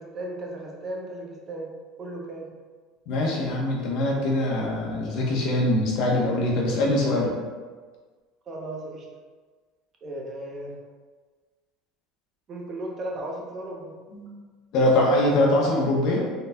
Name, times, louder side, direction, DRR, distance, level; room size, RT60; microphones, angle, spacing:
voice 1, 0.0-1.7 2.0-2.5 8.5-9.0 10.0-10.8 12.5-13.9, right 1 dB, 35° right, -1 dB, 0.8 m, -35 dB
voice 2, 3.1-7.3 14.1-14.3 14.7-16.3, left 1 dB, 60° left, -2 dB, 1.0 m, -23 dB
3.9 x 3.9 x 2.3 m, 1.4 s
supercardioid pair, 120°, 0 cm